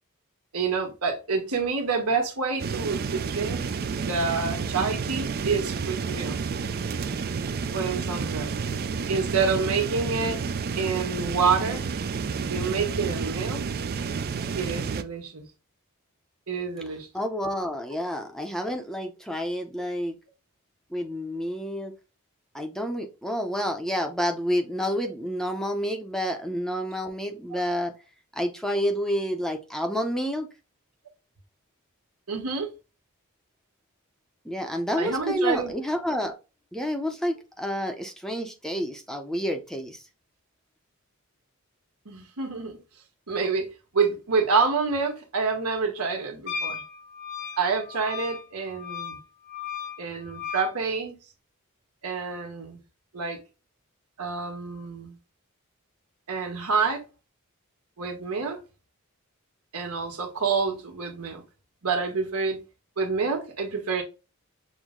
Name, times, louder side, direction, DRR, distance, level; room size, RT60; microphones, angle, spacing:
voice 1, 0.5-3.6 3.9-6.4 7.7-8.5 9.1-10.4 10.8-11.8 12.4-13.6 14.6-15.4 16.5-17.1 32.3-32.7 35.0-35.7 42.0-42.8 43.3-43.7 43.9-46.8 47.6-49.2 50.0-51.2 52.0-52.8 53.1-53.4 54.2-55.2 56.3-57.0 58.0-58.6 59.7-61.4 61.8-62.6 63.0-64.0, right 5 dB, 85° right, 1.3 m, -27 dB
sound 1, 2.6-15.0, right 5 dB, 45° right, 0.4 m, -30 dB
voice 2, 17.1-20.2 20.9-21.9 22.5-27.9 28.3-30.5 34.4-36.3 36.7-40.0, equal, ahead, 0.6 m, -29 dB
Wind instrument woodwind instrument, 46.5-50.7, left 6 dB, 50° left, 0.9 m, -36 dB
6.3 x 2.1 x 3.6 m
head